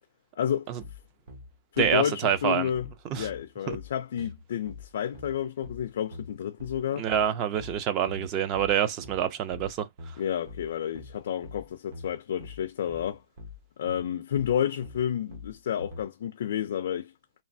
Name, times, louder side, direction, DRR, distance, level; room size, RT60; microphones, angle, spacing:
voice 1, 0.4-0.7 1.7-2.9 3.1-7.1 10.2-13.2 13.8-17.1, left 9 dB, 55° left, 0.3 m, -30 dB
sound 1, 0.8-16.0, left 3 dB, 50° right, 1.0 m, -44 dB
voice 2, 1.8-2.7 3.1-3.3 3.7-3.8 7.0-9.9, right 9 dB, 25° right, 0.4 m, -27 dB
3.0 x 2.2 x 2.6 m
hypercardioid pair, 165°, 0 cm